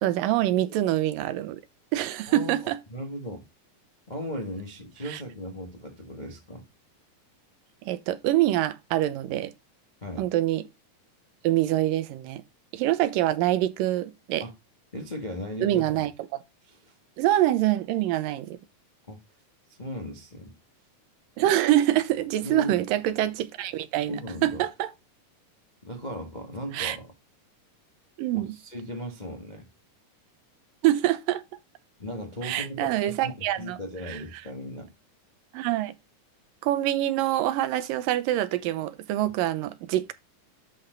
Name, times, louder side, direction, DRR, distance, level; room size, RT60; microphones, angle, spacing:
voice 1, 0.0-1.6 1.9-2.8 5.1-5.2 7.9-9.5 10.2-10.6 11.4-12.4 12.7-14.4 15.6-16.1 17.2-18.6 21.4-24.1 24.4-24.9 26.7-27.0 28.2-28.6 30.8-31.4 32.4-33.8 34.1-34.2 35.5-35.9 36.6-40.1, right 14 dB, 90° right, 2.5 m, -25 dB
voice 2, 2.9-3.4 4.1-6.6 10.0-10.3 14.4-14.5 14.9-16.0 16.6-16.9 19.1-19.2 19.8-20.6 22.4-22.8 24.1-24.6 25.8-27.1 28.3-29.7 32.0-34.9, equal, 45° left, 0.5 m, -37 dB
11.5 x 4.2 x 3.9 m
omnidirectional pair, 3.9 m